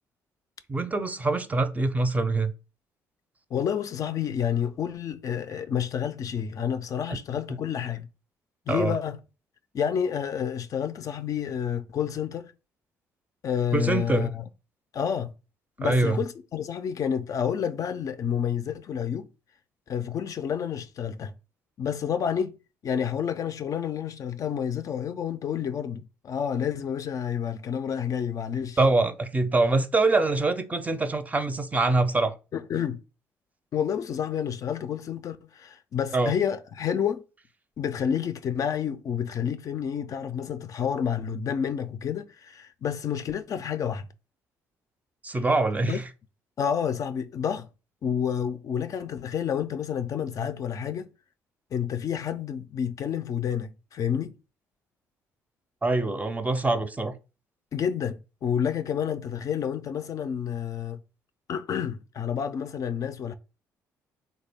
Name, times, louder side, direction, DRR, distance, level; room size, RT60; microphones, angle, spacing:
voice 1, 0.7-2.5 8.7-9.0 13.7-14.3 15.8-16.2 28.8-32.3 36.1-36.3 45.2-46.1 55.8-57.2, right 3 dB, 20° right, 0.5 m, -24 dB
voice 2, 3.5-8.1 8.7-9.2 9.7-12.5 13.4-14.4 14.9-15.3 15.8-19.3 19.9-21.3 21.8-22.6 22.8-28.8 32.5-33.0 33.7-37.2 37.8-44.1 45.9-46.0 46.6-47.7 48.0-51.1 51.7-54.4 57.7-61.0 61.5-63.3, left 8 dB, 50° left, 0.3 m, -29 dB
3.2 x 2.1 x 3.4 m
supercardioid pair, 65°, 7 cm